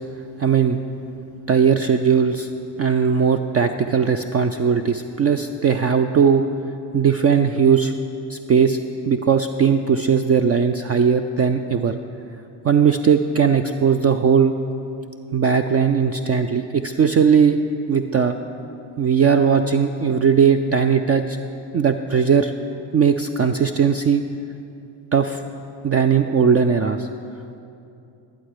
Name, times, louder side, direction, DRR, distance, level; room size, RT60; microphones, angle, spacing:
voice 1, 0.4-0.8 1.5-2.5 2.8-6.5 6.9-7.9 8.3-8.8 9.1-12.0 12.6-14.5 15.3-17.6 17.9-18.4 19.0-21.4 21.7-22.5 22.9-24.2 25.1-25.4 25.8-27.1, right 6 dB, 35° right, 8 dB, 0.4 m, -18 dB
11.5 x 10.0 x 4.8 m, 2.7 s
supercardioid pair, 80°, 48 cm